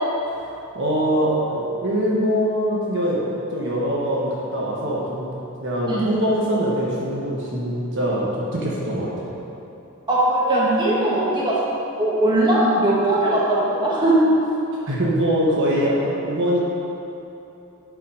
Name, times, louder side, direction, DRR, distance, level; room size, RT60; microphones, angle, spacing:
voice 1, 0.7-3.2 3.5-5.3 5.6-9.3 14.9-16.6, equal, 55° right, -5 dB, 1.3 m, -23 dB
voice 2, 10.1-11.5 12.0-14.1, right 1 dB, 20° right, -7 dB, 1.7 m, -19 dB
8.7 x 5.7 x 5.0 m, 2.8 s
head